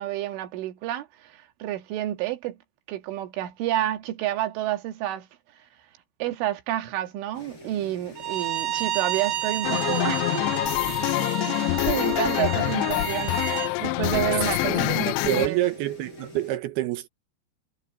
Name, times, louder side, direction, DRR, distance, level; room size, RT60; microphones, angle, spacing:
voice 1, 0.0-2.6 2.9-5.3 5.5-5.6 6.2-10.6 11.5-11.6 11.9-15.6, right 13 dB, 90° right, 4.1 m, -29 dB
sound 1, 7.3-16.6, left 2 dB, 25° left, 8.0 m, -47 dB
Bowed string instrument, 8.2-13.7, right 12 dB, 55° right, 2.9 m, -31 dB
sound 2, 9.6-15.5, left 22 dB, 90° left, 2.4 m, -25 dB
voice 2, 15.3-17.1, right 14 dB, 75° right, 2.6 m, -27 dB
omnidirectional pair, 5.4 m